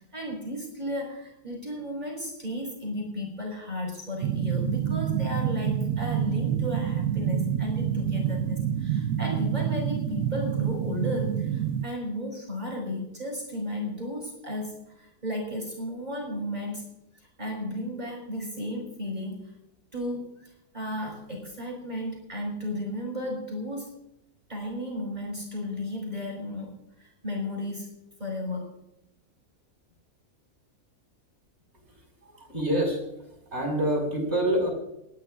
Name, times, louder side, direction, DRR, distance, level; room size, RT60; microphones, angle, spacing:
voice 1, 0.1-16.9 17.4-19.5 19.9-23.9 24.5-26.7 27.0-27.9 28.2-28.7, left 1 dB, 25° right, -2 dB, 5.1 m, -34 dB
sound 1, 4.2-11.8, right 9 dB, 70° right, 1.0 m, -27 dB
voice 2, 32.2-33.0 33.5-34.7, right 1 dB, 40° right, 1 dB, 5.7 m, -26 dB
29.5 x 10.5 x 2.6 m, 0.83 s
omnidirectional pair, 1.7 m